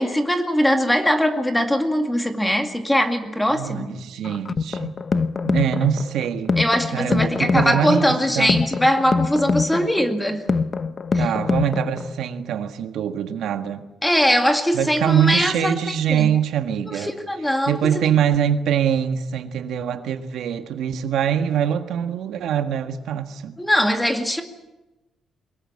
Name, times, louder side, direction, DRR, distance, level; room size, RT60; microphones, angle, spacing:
voice 1, 0.0-3.9 6.6-10.4 11.1-11.2 14.0-16.3 16.9-18.0 23.6-24.4, equal, 5° left, 2.2 m, -21 dB
voice 2, 3.5-4.9 5.4-6.6 6.9-8.6 11.2-13.8 14.7-17.1 17.7-23.6, right 9 dB, 70° right, 1.6 m, -23 dB
sound 1, 4.2-12.2, left 4 dB, 25° left, 0.8 m, -24 dB
23.5 x 21.5 x 8.6 m
cardioid pair, 170°, 0 cm